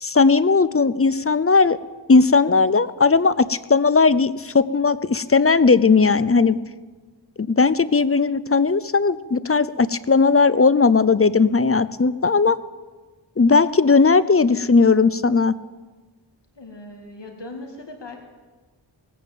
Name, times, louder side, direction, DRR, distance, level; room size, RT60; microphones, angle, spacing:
voice 1, 0.0-1.8 2.1-6.6 7.4-12.6 13.4-15.5, left 4 dB, 30° left, 16 dB, 0.6 m, -17 dB
voice 2, 16.5-18.2, left 2 dB, 65° left, 3 dB, 2.2 m, -38 dB
19.0 x 9.3 x 7.5 m, 1.3 s
wide cardioid pair, 55°, 46 cm